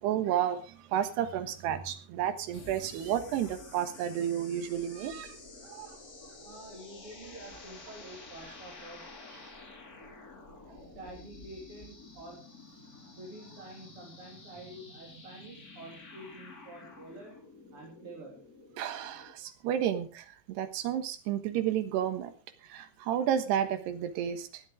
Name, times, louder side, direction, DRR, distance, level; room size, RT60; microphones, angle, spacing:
voice 1, 0.0-5.4 5.6-6.0 10.0-10.1 10.7-10.8 18.8-22.3 22.6-24.6, right 10 dB, 90° right, 3.4 m, -31 dB
sound 1, 2.5-19.3, left 3 dB, 25° left, 2.5 m, -50 dB
voice 2, 6.4-9.1 10.9-12.5 13.2-17.4 17.7-18.5, right 1 dB, 35° right, 4.0 m, -48 dB
18.0 x 11.5 x 3.7 m
omnidirectional pair, 4.7 m